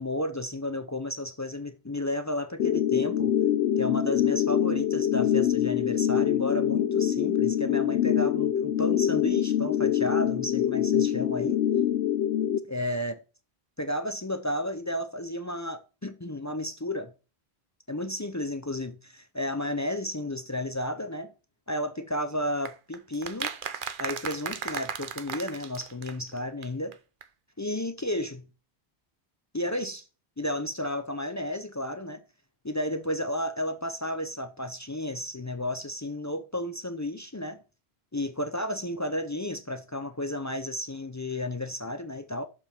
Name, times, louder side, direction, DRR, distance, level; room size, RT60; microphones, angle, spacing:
voice 1, 0.0-3.3 3.8-11.6 12.7-13.2 13.8-17.1 17.9-21.3 21.7-23.5 24.0-26.9 27.6-28.5 29.5-30.1 30.4-32.2 32.6-37.6 38.1-42.5, left 1 dB, 30° left, 0.3 m, -32 dB
sound 1, 2.6-12.6, left 10 dB, 85° left, 0.9 m, -25 dB
sound 2, 22.7-26.7 26.9-27.0 27.2-27.3, right 7 dB, 55° right, 0.8 m, -36 dB
6.8 x 5.4 x 4.4 m
omnidirectional pair, 1.1 m